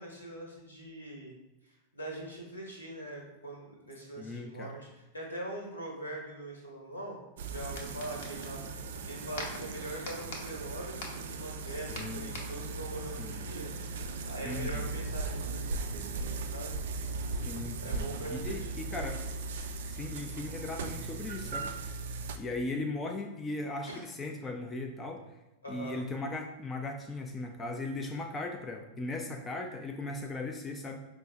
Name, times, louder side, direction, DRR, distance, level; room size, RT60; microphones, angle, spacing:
voice 1, 0.0-1.3 1.6-7.2 7.5-16.8 17.8-18.7 23.9-24.0 25.6-26.0, right 1 dB, 80° left, -1 dB, 1.0 m, -43 dB
voice 2, 4.2-4.7 11.9-12.4 13.2-13.5 14.4-14.9 17.4-19.2 19.9-21.7 22.4-25.2 25.7-31.0, left 2 dB, 20° left, 4 dB, 0.3 m, -38 dB
sound 1, 7.4-22.4, right 3 dB, 60° right, 0.3 m, -38 dB
sound 2, 7.5-13.0, left 2 dB, 55° left, 0.7 m, -46 dB
5.0 x 2.0 x 3.5 m, 0.98 s
figure-of-eight pair, 90°, 0 cm